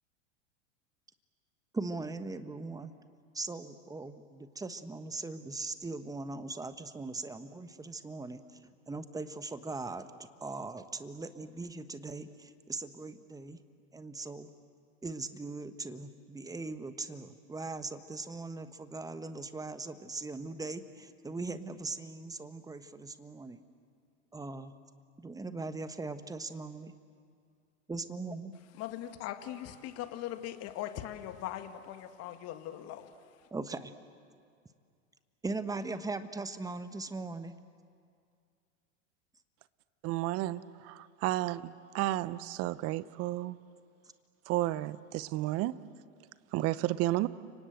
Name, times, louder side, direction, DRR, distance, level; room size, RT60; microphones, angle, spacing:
voice 1, 1.7-2.9 3.3-8.6 8.9-10.1 10.4-13.6 13.9-14.5 15.0-23.6 24.3-24.7 25.2-26.9 27.9-28.5 33.5-33.9 35.4-37.5, right 3 dB, 10° right, 1.2 m, -40 dB
voice 2, 28.7-33.5, left 12 dB, 40° left, 1.9 m, -40 dB
voice 3, 40.0-43.6 44.5-45.8 46.5-47.3, right 16 dB, 35° right, 0.8 m, -32 dB
30.0 x 25.0 x 7.9 m
hypercardioid pair, 100°, 39 cm